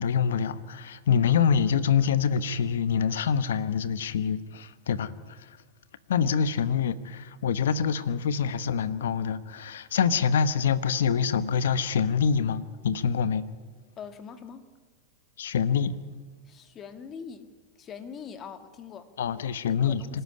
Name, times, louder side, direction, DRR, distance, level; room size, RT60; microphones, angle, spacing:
voice 1, 0.0-5.5 6.1-13.4 15.4-16.0 19.2-20.2, left 7 dB, 75° left, 1.1 m, -25 dB
voice 2, 14.0-14.6 16.4-17.5 17.8-19.1 19.7-20.2, left 6 dB, 35° left, 2.1 m, -42 dB
26.0 x 12.5 x 9.8 m
hypercardioid pair, 100°, 0 cm